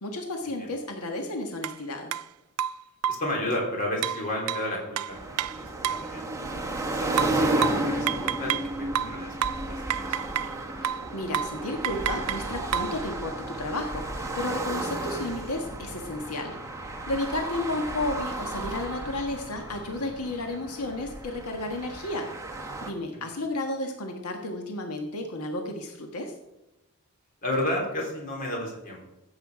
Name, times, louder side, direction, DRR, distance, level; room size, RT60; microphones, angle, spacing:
voice 1, 0.0-2.1 10.8-16.6 17.1-22.3 22.8-26.3, left 2 dB, 90° left, 4 dB, 1.5 m, -32 dB
sound 1, 1.6-1.8 2.1-2.2 2.6-3.3 4.0-6.1 7.2-8.7 8.9-10.6 10.8-11.1 11.3-11.6 11.8-13.0, right 10 dB, 80° right, 0.4 m, -30 dB
voice 2, 3.1-6.3 6.8-10.5 23.1-23.4 27.4-29.0, left 1 dB, 35° left, -1 dB, 3.4 m, -33 dB
sound 2, 5.1-22.9, right 2 dB, 15° right, 1.2 m, -33 dB
15.0 x 8.0 x 4.9 m, 0.98 s
head